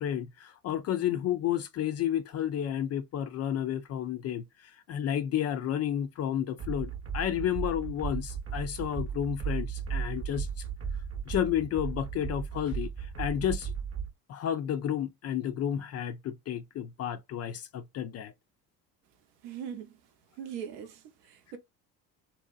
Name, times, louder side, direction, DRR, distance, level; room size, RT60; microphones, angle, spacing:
voice 1, 0.0-10.5 11.3-13.7 14.3-18.3, left 10 dB, 35° left, 0.4 m, -31 dB
sound 1, 6.6-14.1, right 6 dB, 30° right, 0.8 m, -35 dB
voice 2, 19.4-19.9 20.4-21.6, right 8 dB, 75° right, 0.7 m, -40 dB
2.7 x 2.0 x 2.3 m
hypercardioid pair, 65°, 47 cm